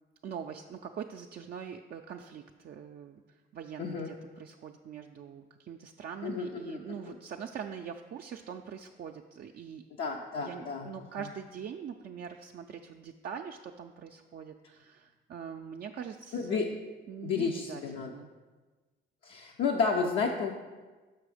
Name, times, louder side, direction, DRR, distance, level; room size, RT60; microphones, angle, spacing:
voice 1, 0.2-9.8 10.1-16.7 17.1-18.3, right 7 dB, 50° right, 2 dB, 0.4 m, -43 dB
voice 2, 6.2-6.8 7.0-7.2 10.0-10.9 16.3-16.7 17.2-18.1 19.2-20.5, left 5 dB, 80° left, 0 dB, 0.6 m, -31 dB
6.0 x 5.7 x 4.9 m, 1.3 s
cardioid pair, 90°, 20 cm